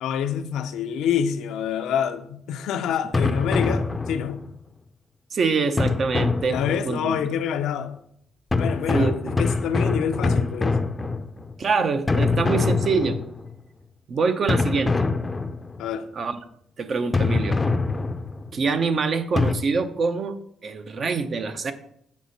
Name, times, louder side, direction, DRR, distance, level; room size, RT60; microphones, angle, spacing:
voice 1, 0.0-4.4 6.5-8.0 8.5-10.8 15.8-16.1, left 8 dB, 85° left, 0.5 m, -27 dB
sound 1, 3.1-4.5 5.8-7.1 8.5-11.6 12.1-13.6 14.5-15.9 17.1-18.5 19.4-19.5, left 3 dB, 20° left, 0.5 m, -24 dB
voice 2, 5.3-7.2 8.9-9.3 11.6-13.2 14.1-15.0 16.1-16.4 16.8-17.6 18.5-20.4 20.6-21.7, right 4 dB, 50° right, 0.8 m, -25 dB
8.2 x 5.1 x 4.1 m
cardioid pair, 90°, 0 cm